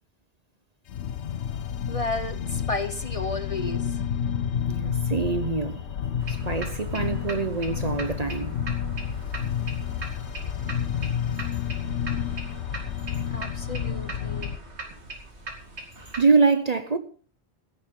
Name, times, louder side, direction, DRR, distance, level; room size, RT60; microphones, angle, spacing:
sound 1, 0.9-14.6, left 8 dB, 80° left, 1.0 m, -30 dB
voice 1, 1.9-4.0 13.3-14.5, left 2 dB, 35° left, 1.0 m, -32 dB
voice 2, 4.7-5.9 6.3-8.6 16.2-17.0, right 4 dB, 40° right, 0.9 m, -24 dB
sound 2, 6.2-16.3, right 2 dB, 75° right, 2.8 m, -40 dB
15.5 x 11.0 x 3.7 m
omnidirectional pair, 1.1 m